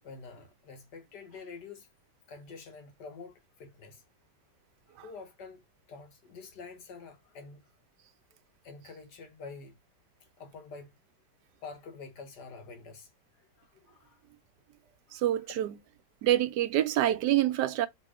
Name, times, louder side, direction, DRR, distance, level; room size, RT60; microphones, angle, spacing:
voice 1, 0.0-1.9 2.3-4.0 4.9-5.6 5.9-7.6 8.6-9.8 10.2-10.9 11.6-13.1 13.6-14.2 15.1-15.6, left 4 dB, 70° left, 1.7 m, -47 dB
voice 2, 15.1-15.8 16.2-17.9, right 13 dB, 75° right, 1.1 m, -26 dB
3.4 x 3.0 x 4.7 m
omnidirectional pair, 1.9 m